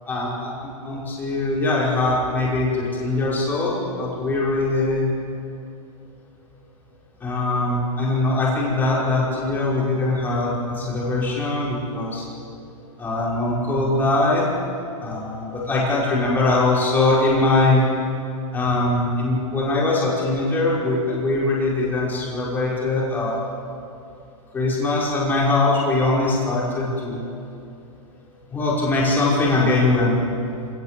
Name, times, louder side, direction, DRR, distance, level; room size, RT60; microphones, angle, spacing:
voice 1, 0.1-5.0 7.2-12.3 13.0-14.4 15.0-17.9 18.5-23.4 24.5-27.3 28.5-30.2, left 2 dB, 10° left, -6 dB, 5.5 m, -22 dB
27.0 x 17.5 x 7.8 m, 2.6 s
hypercardioid pair, 160°, 19 cm